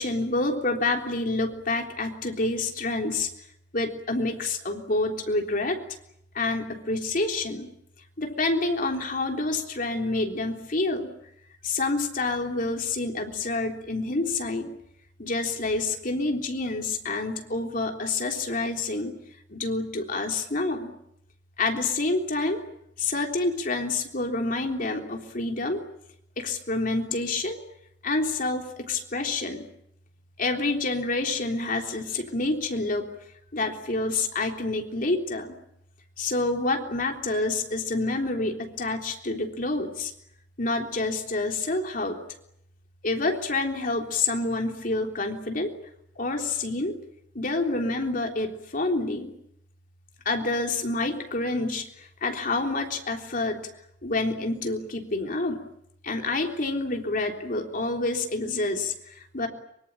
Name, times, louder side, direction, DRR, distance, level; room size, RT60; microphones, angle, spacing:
voice 1, 0.0-3.3 3.7-5.8 6.3-7.7 8.2-11.1 11.6-14.7 15.2-19.1 19.5-20.9 21.6-22.6 23.0-25.8 26.4-27.6 28.0-29.7 30.4-33.1 33.5-35.6 36.2-40.1 40.6-42.2 43.0-45.7 46.2-47.0 47.4-49.3 50.3-53.6 54.0-55.6 56.0-59.5, left 2 dB, 50° left, 3 dB, 3.6 m, -28 dB
24.5 x 24.0 x 8.9 m, 0.76 s
head